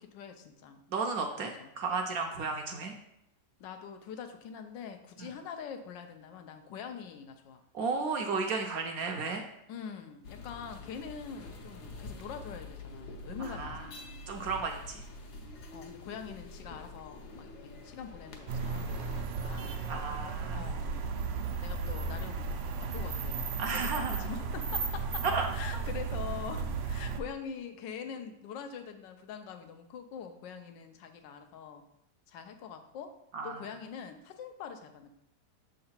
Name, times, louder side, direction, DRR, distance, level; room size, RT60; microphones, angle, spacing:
voice 1, 0.0-0.8 1.4-1.7 3.6-7.6 9.7-14.2 15.7-19.8 20.5-21.1 21.6-22.5 22.8-25.3 25.5-31.8 32.3-33.1 33.4-35.1, left 7 dB, 85° left, 7 dB, 1.3 m, -44 dB
voice 2, 0.9-2.9 5.2-5.3 7.7-9.4 13.4-13.8 14.3-15.0 19.9-20.6 23.6-24.2 25.3-25.5 25.7-25.8 33.3-33.5, right 4 dB, 70° right, 3 dB, 0.9 m, -34 dB
sound 1, 10.2-19.2, left 2 dB, 65° left, 1.4 m, -46 dB
sound 2, 18.5-27.2, right 4 dB, 90° right, 1.3 m, -35 dB
6.7 x 3.8 x 4.3 m, 0.81 s
omnidirectional pair, 1.9 m